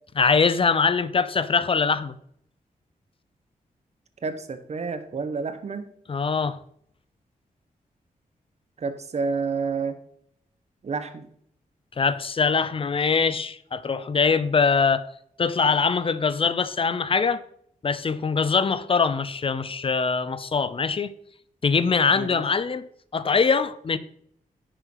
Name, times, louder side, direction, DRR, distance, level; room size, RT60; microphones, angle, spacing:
voice 1, 0.2-2.2 6.1-6.6 12.0-15.0 15.4-17.4 17.8-21.1 21.6-24.0, left 5 dB, 40° left, 0.7 m, -23 dB
voice 2, 4.2-5.8 8.8-10.0 10.8-11.3 22.1-22.3, right 4 dB, 50° right, 1.2 m, -29 dB
9.8 x 6.7 x 5.6 m
wide cardioid pair, 130°, 15 cm